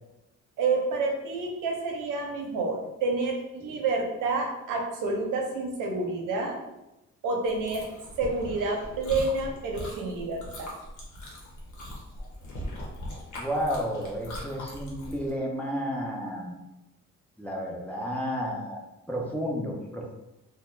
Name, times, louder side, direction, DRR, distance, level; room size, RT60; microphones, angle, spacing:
voice 1, 0.6-6.6 7.2-7.9 8.2-10.7, right 3 dB, 85° right, 1 dB, 0.7 m, -29 dB
Chewing mastication, 7.4-15.3, left 1 dB, 75° left, 1.0 m, -40 dB
voice 2, 13.3-16.6 17.4-18.8 19.1-20.1, equal, 5° left, -2 dB, 0.6 m, -31 dB
2.7 x 2.1 x 3.2 m, 0.94 s
cardioid pair, 90°, 30 cm